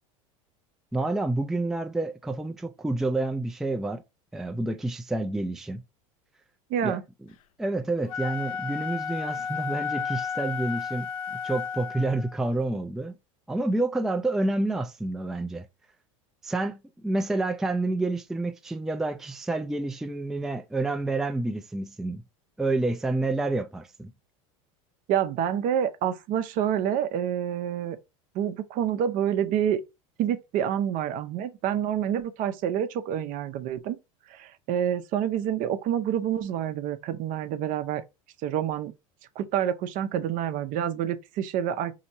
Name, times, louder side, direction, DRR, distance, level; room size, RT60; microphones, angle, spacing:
voice 1, 0.9-4.0 4.3-5.8 6.8-7.0 7.6-11.1 11.4-13.1 13.5-15.7 16.4-22.2 22.6-24.1, right 2 dB, ahead, 0.3 m, -28 dB
voice 2, 6.7-7.0 25.1-28.0 28.3-29.8 30.2-34.0 34.3-38.0 38.4-38.9 39.4-41.9, right 9 dB, 50° right, 0.6 m, -27 dB
Wind instrument woodwind instrument, 8.0-12.4, left 6 dB, 85° left, 0.5 m, -33 dB
4.3 x 2.8 x 2.6 m
hypercardioid pair, 100°, 17 cm